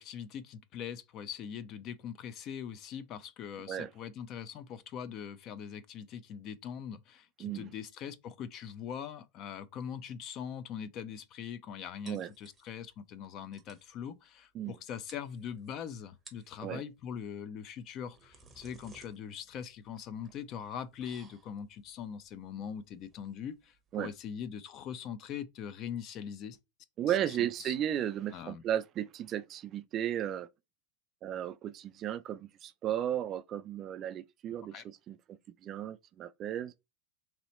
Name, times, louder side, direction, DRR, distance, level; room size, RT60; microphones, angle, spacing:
voice 1, 0.0-26.6 27.4-27.7 28.3-28.6 34.7-34.8, left 8 dB, 35° left, 0.5 m, -42 dB
voice 2, 7.4-7.7 12.1-12.3 14.5-14.8 16.6-16.8 23.9-24.1 27.0-30.5 31.2-36.7, right 10 dB, 30° right, 0.3 m, -35 dB
sound 1, 12.1-12.9 13.2-13.3 13.5-13.9 14.7-14.8 15.1-15.7 16.1-16.6 17.8-24.4, right 4 dB, 10° right, 0.7 m, -58 dB
3.2 x 2.9 x 4.1 m
supercardioid pair, 155°, 0 cm